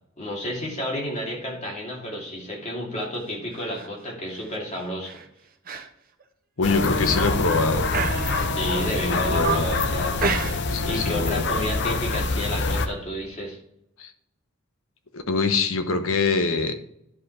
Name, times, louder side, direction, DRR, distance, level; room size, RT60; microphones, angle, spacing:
voice 1, 0.2-5.2 8.6-10.3 10.6-13.6, equal, 35° left, -2 dB, 2.6 m, -31 dB
sound 1, 3.5-3.9 4.3-4.5 5.0-5.2 5.6-5.9 6.2-6.3 6.9-7.4 7.9-8.7 9.1-9.8 10.2-10.9 11.1-11.4, right 5 dB, 45° right, 0.9 m, -31 dB
voice 2, 6.6-7.9 9.0-9.7 10.7-11.5 14.0-14.1 15.1-16.7, left 4 dB, 85° left, 8 dB, 1.1 m, -24 dB
sound 2, 6.6-12.9, left 3 dB, 55° left, 0.7 m, -25 dB
11.0 x 5.2 x 4.3 m, 0.74 s
head